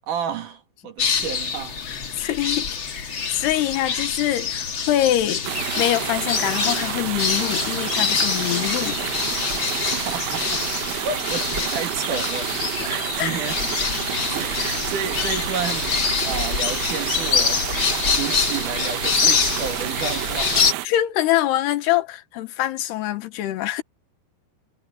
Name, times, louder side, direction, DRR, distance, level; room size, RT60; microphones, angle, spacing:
voice 1, 0.1-1.8 3.9-4.0 9.9-10.6 11.0-12.5 12.9-13.8 14.3-20.8, right 6 dB, 55° right, 3.1 m, -31 dB
sound 1, 1.0-20.7, left 6 dB, 40° left, 1.9 m, -25 dB
voice 2, 1.9-5.4 5.8-9.0 13.2-13.4 20.9-23.8, left 13 dB, 85° left, 3.4 m, -24 dB
sound 2, 5.4-20.9, right 16 dB, 75° right, 2.4 m, -29 dB
omnidirectional pair, 4.6 m